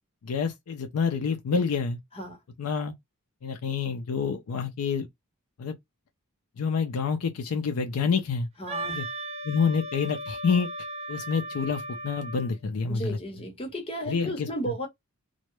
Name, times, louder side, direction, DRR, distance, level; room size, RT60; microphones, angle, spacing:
voice 1, 0.2-2.0 2.6-2.9 3.4-5.1 5.6-5.7 6.6-8.5 8.9-9.1 9.4-10.7 11.1-13.2 14.1-14.7, left 5 dB, 70° left, 0.4 m, -28 dB
voice 2, 8.6-9.0 12.9-14.9, equal, 25° left, 0.8 m, -34 dB
Wind instrument woodwind instrument, 8.7-12.5, right 1 dB, 30° right, 0.5 m, -36 dB
2.2 x 2.0 x 3.0 m
head